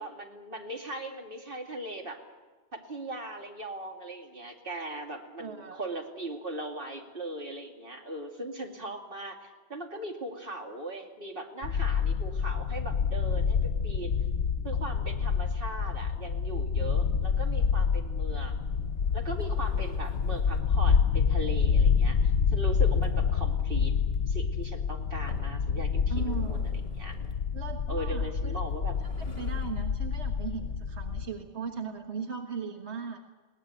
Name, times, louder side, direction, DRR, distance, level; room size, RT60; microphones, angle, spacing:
voice 1, 0.0-2.2 2.7-14.1 14.6-18.7 19.1-23.9 24.3-26.6 27.0-27.2 27.9-28.9, right 1 dB, 55° right, 2 dB, 2.8 m, -39 dB
voice 2, 5.4-5.8 26.1-26.7 27.5-28.5 29.3-33.2, right 6 dB, 90° right, 4 dB, 1.7 m, -38 dB
sound 1, 11.6-31.3, left 6 dB, 75° left, 1.1 m, -28 dB
sound 2, 18.6-20.7 22.5-23.4 24.1-24.2 24.6-24.7 25.3-25.6 26.0-27.5 28.6-29.9, left 1 dB, 50° left, 2.9 m, -50 dB
21.5 x 18.0 x 8.1 m, 1.3 s
omnidirectional pair, 1.1 m